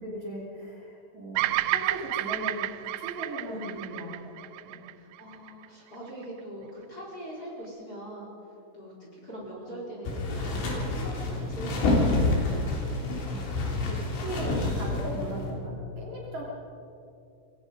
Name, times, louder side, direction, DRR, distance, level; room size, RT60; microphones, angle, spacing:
voice 1, 0.0-4.2 4.4-4.9 9.0-9.1 12.0-12.4 13.1-16.4, right 1 dB, 40° right, -4 dB, 3.7 m, -38 dB
Bird vocalization bird call bird song, 1.4-5.7, right 16 dB, 85° right, 2.4 m, -30 dB
voice 2, 3.4-4.0 5.0-8.3 8.7-12.3 12.9-13.0 15.1-15.3, right 1 dB, 20° left, -4 dB, 4.6 m, -42 dB
sound 1, 10.1-15.5, left 2 dB, 85° left, 6.0 m, -28 dB
27.0 x 21.5 x 5.4 m, 2.7 s
omnidirectional pair, 5.5 m